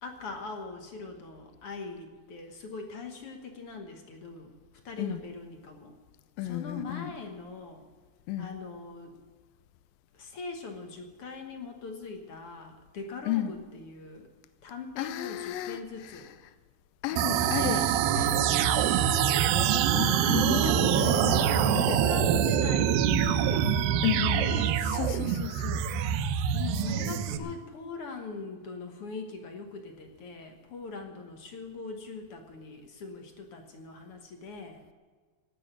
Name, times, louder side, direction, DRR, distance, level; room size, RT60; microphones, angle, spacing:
voice 1, 0.0-4.5 4.8-6.0 6.4-7.9 8.4-9.1 10.1-14.3 14.6-16.3 17.1-18.5 20.5-20.9 21.3-23.8 24.0-24.8 26.5-34.8, left 4 dB, 60° left, 4 dB, 1.5 m, -41 dB
voice 2, 6.4-7.1 8.3-8.5 13.3-13.5 15.0-16.2 17.0-17.8 19.9-22.0 24.0-24.4 24.9-25.9, left 12 dB, 80° left, 11 dB, 2.3 m, -33 dB
sound 1, 17.2-27.4, right 9 dB, 85° right, 2.5 m, -25 dB
17.0 x 6.4 x 9.9 m, 1.5 s
omnidirectional pair, 4.2 m